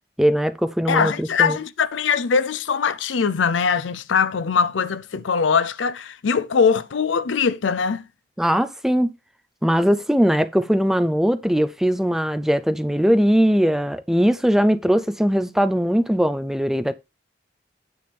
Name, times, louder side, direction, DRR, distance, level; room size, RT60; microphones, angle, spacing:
voice 1, 0.2-1.6 8.4-9.1 9.6-16.9, equal, ahead, 0.4 m, -20 dB
voice 2, 0.9-8.0, left 6 dB, 85° left, 0.5 m, -21 dB
9.3 x 3.4 x 6.9 m
head